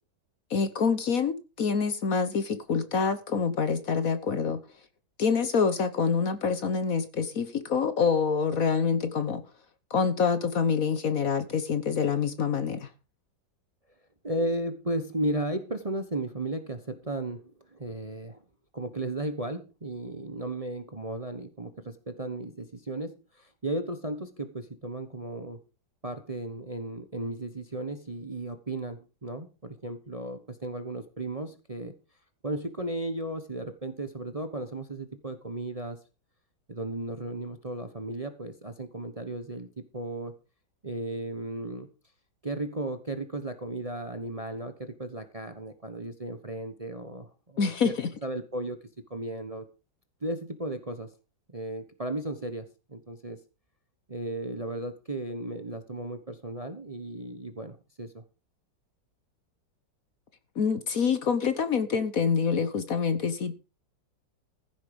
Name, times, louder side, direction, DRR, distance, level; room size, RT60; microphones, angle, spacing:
voice 1, 0.5-4.6 5.2-9.4 9.9-12.9 47.6-48.1 60.5-63.5, left 6 dB, 50° left, 1.4 m, -26 dB
voice 2, 14.2-18.4 18.7-25.6 26.0-31.9 32.4-36.0 36.7-40.3 40.8-41.9 42.4-47.9 48.2-48.8 49.1-49.6 50.2-51.1 51.5-53.4 54.1-58.2, right 1 dB, 25° right, 1.1 m, -35 dB
15.5 x 7.9 x 5.2 m
omnidirectional pair, 2.0 m